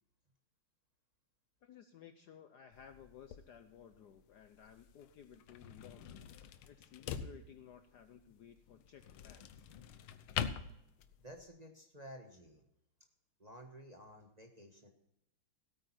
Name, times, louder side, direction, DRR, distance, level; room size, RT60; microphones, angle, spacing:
voice 1, 1.6-9.7, left 8 dB, 65° left, 9 dB, 1.1 m, -57 dB
sound 1, 2.7-11.5, left 8 dB, 80° left, 1.6 m, -45 dB
voice 2, 11.2-12.6 13.4-14.9, equal, 25° right, 3 dB, 1.2 m, -53 dB
17.0 x 8.9 x 4.3 m, 0.83 s
omnidirectional pair, 2.3 m